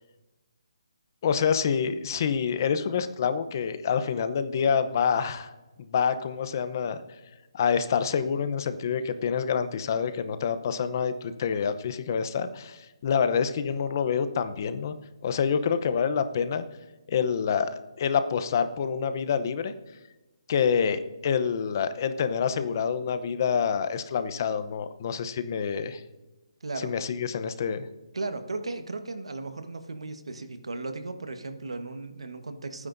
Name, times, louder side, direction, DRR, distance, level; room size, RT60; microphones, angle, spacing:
voice 1, 1.2-5.5 5.9-7.0 7.5-15.0 15.2-16.6 17.1-19.7 20.5-26.0 26.8-27.9, left 6 dB, 40° left, 11 dB, 0.8 m, -27 dB
voice 2, 26.6-26.9 28.1-32.9, right 3 dB, 85° right, 8 dB, 1.3 m, -36 dB
28.5 x 9.6 x 2.7 m, 1.1 s
hypercardioid pair, 160°, 3 cm